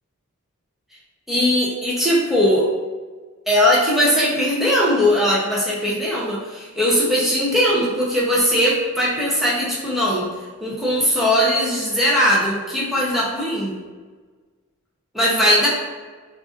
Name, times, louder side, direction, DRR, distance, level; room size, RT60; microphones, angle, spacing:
voice 1, 1.3-2.7 3.5-10.3 10.6-13.7 15.1-15.7, equal, ahead, -7 dB, 0.9 m, -19 dB
5.5 x 2.7 x 2.6 m, 1.4 s
head